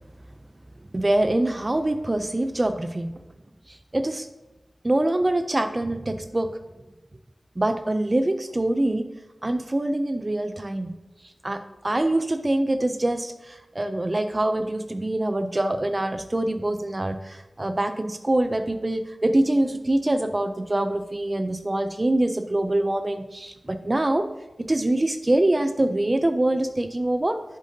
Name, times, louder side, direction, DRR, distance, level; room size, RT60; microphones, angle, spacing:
voice 1, 0.9-3.1 3.7-4.3 4.8-6.6 7.6-9.1 9.4-10.9 11.2-24.3 24.6-27.4, right 1 dB, 30° right, 9 dB, 0.3 m, -24 dB
7.4 x 7.3 x 2.7 m, 1.0 s
wide cardioid pair, 65°, 0 cm